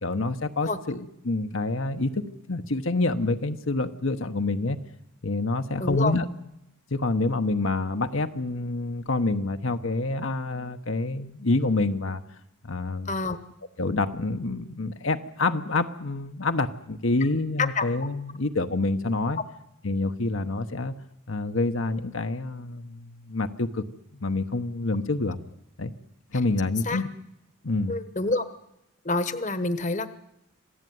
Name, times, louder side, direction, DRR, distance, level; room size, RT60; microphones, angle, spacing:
voice 1, 0.0-4.8 5.2-6.3 6.9-12.2 12.6-13.1 13.8-19.4 19.8-20.9 21.3-23.8 24.1-25.4 25.8-25.9 26.3-27.1 27.6-28.0, left 2 dB, 70° left, 7 dB, 1.1 m, -27 dB
voice 2, 5.8-6.1 13.0-13.4 17.6-17.8 26.8-27.0 27.9-28.4 29.0-30.2, left 3 dB, 35° left, 12 dB, 1.2 m, -27 dB
27.0 x 16.0 x 9.5 m, 0.86 s
head